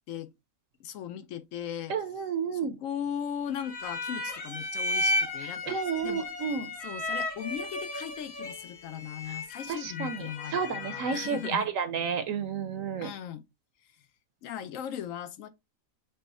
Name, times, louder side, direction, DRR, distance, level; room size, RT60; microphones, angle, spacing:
voice 1, 0.8-1.9 2.5-5.8 6.0-6.3 6.8-11.7 13.0-13.4 14.4-15.5, left 9 dB, 75° left, 0.9 m, -38 dB
voice 2, 1.9-2.8 5.4-6.7 9.3-9.4 9.7-13.1, right 6 dB, 75° right, 1.0 m, -31 dB
sound 1, 3.6-11.7, left 1 dB, 40° left, 1.4 m, -34 dB
5.3 x 2.1 x 4.1 m
omnidirectional pair, 1.5 m